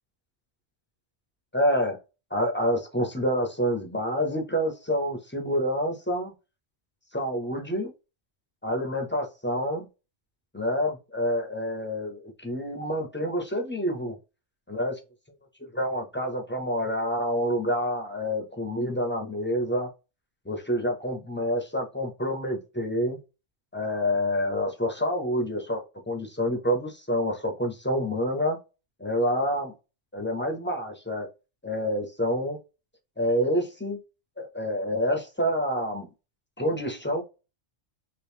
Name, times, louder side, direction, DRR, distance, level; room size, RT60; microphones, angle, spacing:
voice 1, 1.5-2.0 2.3-6.3 7.1-7.9 8.6-9.9 10.5-14.2 14.7-14.9 15.7-19.9 20.5-23.2 23.7-28.6 29.0-29.7 30.1-31.3 31.6-32.6 33.2-34.0 34.4-36.1 36.6-37.2, equal, 15° left, 0.4 m, -27 dB
3.0 x 2.5 x 3.4 m
omnidirectional pair, 1.2 m